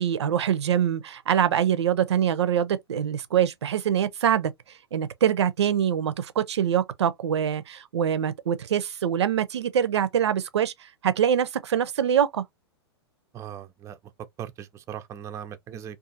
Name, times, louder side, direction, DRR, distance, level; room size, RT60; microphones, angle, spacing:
voice 1, 0.0-4.5 4.9-10.7 11.0-12.4, right 9 dB, 80° right, 0.5 m, -24 dB
voice 2, 13.3-14.0 14.4-16.0, right 9 dB, 20° right, 0.4 m, -39 dB
2.4 x 2.4 x 2.7 m
hypercardioid pair, 110°, 14 cm